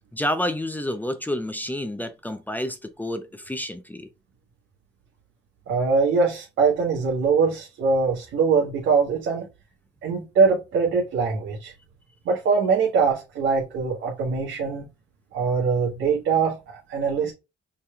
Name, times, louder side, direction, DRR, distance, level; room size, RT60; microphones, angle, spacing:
voice 1, 0.1-4.1, left 1 dB, 10° left, 0.7 m, -29 dB
voice 2, 5.7-9.5 10.0-11.7 12.2-14.9 15.3-17.3, right 5 dB, 80° right, 1.7 m, -22 dB
5.7 x 3.4 x 2.4 m
cardioid pair, 90°, 20 cm